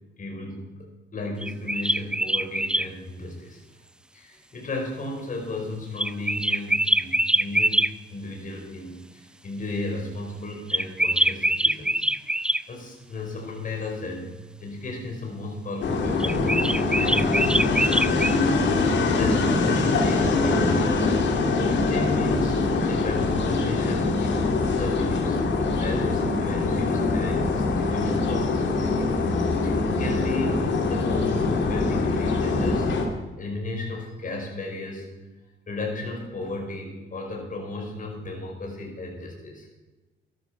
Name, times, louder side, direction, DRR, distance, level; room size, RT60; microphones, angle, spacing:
voice 1, 0.2-3.6 4.1-12.0 12.7-14.3 14.6-18.4 19.2-21.1 21.5-25.4 25.8-35.1 35.7-39.7, left 2 dB, 40° left, 0 dB, 5.1 m, -34 dB
sound 1, 1.4-2.9 6.0-7.9 10.7-12.6 16.2-18.4, right 1 dB, 5° right, 0.4 m, -24 dB
sound 2, 15.8-33.1, left 3 dB, 65° left, 2.5 m, -23 dB
13.5 x 12.0 x 6.0 m, 1.2 s
cardioid pair, 90°, 20 cm